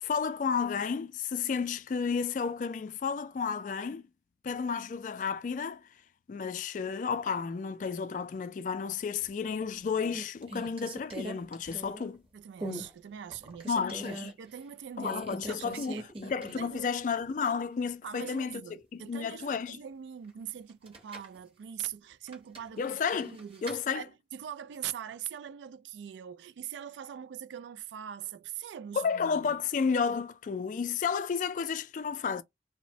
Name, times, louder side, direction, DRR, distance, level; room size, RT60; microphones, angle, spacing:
voice 1, 0.0-4.1 4.4-5.8 6.3-12.2 13.7-14.3 15.0-16.0 16.2-18.6 18.9-19.8 22.8-23.4 23.6-24.1 28.9-32.4, left 6 dB, 45° left, 0.3 m, -32 dB
sound 1, 9.2-9.6 10.0-12.2 12.6-12.9 13.3-14.3 15.0-16.8 17.1-17.2 20.7-21.4 22.3-23.8, right 1 dB, 30° right, 0.8 m, -41 dB
voice 2, 12.3-15.2 15.5-16.9 18.0-29.6, right 9 dB, 85° right, 0.3 m, -42 dB
2.9 x 2.0 x 2.6 m
head